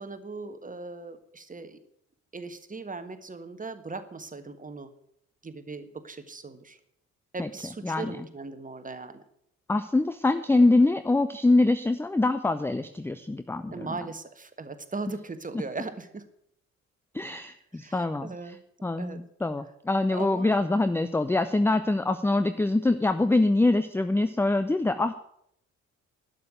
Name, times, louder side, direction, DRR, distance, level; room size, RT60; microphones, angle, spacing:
voice 1, 0.0-1.8 2.3-4.9 5.4-6.8 7.3-9.2 13.7-16.3 17.7-18.6 19.0-19.2 20.1-20.5, right 3 dB, 20° right, 9 dB, 1.5 m, -38 dB
voice 2, 7.8-8.2 9.7-13.9 17.1-18.3 18.8-25.2, left 2 dB, 5° left, 11 dB, 0.6 m, -24 dB
12.0 x 6.9 x 9.0 m, 0.73 s
figure-of-eight pair, 45°, 40 cm